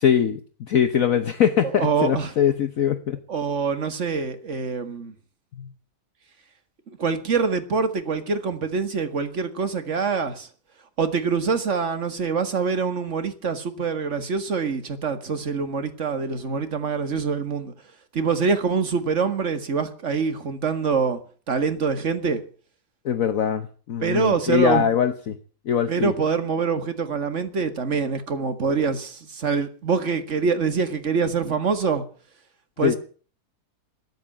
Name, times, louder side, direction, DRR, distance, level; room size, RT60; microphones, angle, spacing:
voice 1, 0.0-0.4 0.7-3.2 5.6-5.7 23.0-25.4 25.7-26.1 32.8-32.9, left 8 dB, 55° left, 1.2 m, -22 dB
voice 2, 1.8-2.3 3.3-5.1 7.0-10.5 11.0-17.7 18.1-21.2 21.5-22.4 24.0-24.8 25.9-32.0 32.8-33.0, right 5 dB, 45° right, 2.0 m, -25 dB
13.5 x 9.2 x 9.0 m
omnidirectional pair, 1.8 m